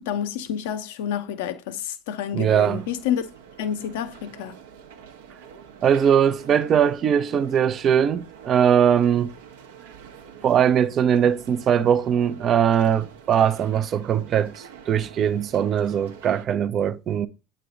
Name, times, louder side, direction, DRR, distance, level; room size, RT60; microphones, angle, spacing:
voice 1, 0.1-3.3 3.6-4.6, left 9 dB, 70° left, 0.7 m, -29 dB
voice 2, 2.3-2.8 5.8-9.3 10.4-14.5 14.9-17.3, right 8 dB, 45° right, 0.5 m, -20 dB
sound 1, 2.6-16.5, right 7 dB, 75° right, 0.8 m, -46 dB
8.3 x 3.3 x 3.9 m
figure-of-eight pair, 65°, 0 cm